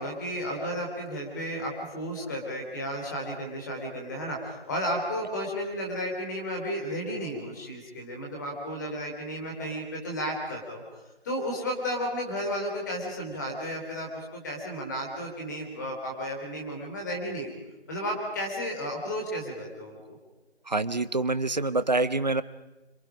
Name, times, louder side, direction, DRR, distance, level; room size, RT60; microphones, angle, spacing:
voice 1, 0.0-10.8 11.2-17.5 17.9-20.2, equal, 15° left, 1 dB, 3.6 m, -33 dB
voice 2, 20.7-22.4, right 2 dB, 40° right, 15 dB, 0.8 m, -26 dB
30.0 x 26.5 x 5.1 m, 1.0 s
figure-of-eight pair, 170°, 34 cm